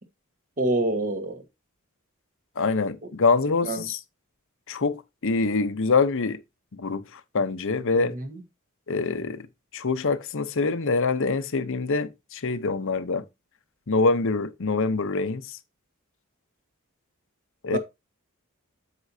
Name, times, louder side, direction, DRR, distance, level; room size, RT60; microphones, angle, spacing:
voice 1, 0.6-1.4 3.6-3.9 8.0-8.3 17.7-17.8, right 2 dB, 40° right, 1.4 m, -26 dB
voice 2, 2.6-4.0 4.7-6.4 6.7-8.1 8.9-9.5 9.7-13.2 13.9-15.6 17.6-17.8, left 4 dB, 60° left, 0.8 m, -25 dB
8.1 x 7.0 x 2.7 m
head